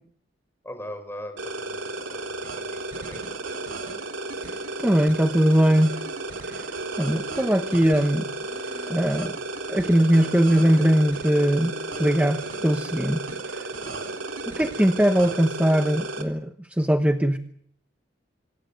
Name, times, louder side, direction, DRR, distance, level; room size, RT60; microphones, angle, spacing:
voice 1, 0.6-3.2, left 1 dB, 15° left, 6 dB, 6.1 m, -40 dB
sound 1, 1.4-16.2, right 2 dB, 90° right, 3.6 m, -33 dB
Breathing, 4.4-5.1 5.7-8.1 8.4-9.2 9.6-10.2 10.4-11.1 11.7-12.2, equal, 25° right, 4.9 m, -47 dB
voice 2, 4.8-5.9 7.0-8.3 8.9-9.3 9.7-13.2 14.6-17.4, equal, 10° right, 7 dB, 1.0 m, -20 dB
26.5 x 18.5 x 7.9 m, 0.68 s
head